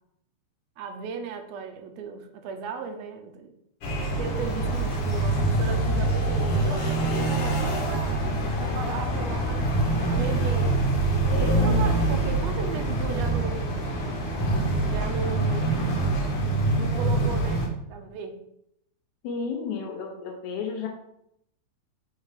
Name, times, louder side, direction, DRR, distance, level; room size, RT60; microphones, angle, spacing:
voice 1, 0.8-3.5 4.2-9.7 10.0-10.9 11.4-13.6 14.8-16.0 16.8-17.6 17.9-18.4, right 5 dB, 75° right, 6 dB, 1.7 m, -36 dB
sound 1, 3.8-17.7, right 2 dB, 60° left, 2.0 m, -25 dB
voice 2, 11.3-11.8 19.2-20.9, left 4 dB, 85° left, 2 dB, 2.2 m, -32 dB
5.7 x 3.8 x 4.8 m, 0.76 s
omnidirectional pair, 3.4 m